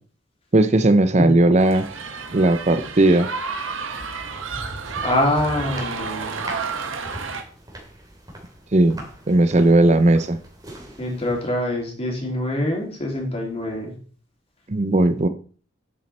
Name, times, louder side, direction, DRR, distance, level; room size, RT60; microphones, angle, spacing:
voice 1, 0.5-1.9 2.3-3.3 8.7-10.4 14.7-15.3, right 2 dB, 35° right, 10 dB, 0.6 m, -17 dB
sound 1, 1.6-7.4, right 4 dB, 90° right, 1.5 m, -31 dB
sound 2, 3.9-11.7, right 1 dB, 20° right, 2.8 m, -41 dB
voice 2, 5.0-6.4 11.0-13.9, left 1 dB, 30° left, 0 dB, 3.2 m, -24 dB
10.0 x 7.6 x 4.3 m, 0.41 s
head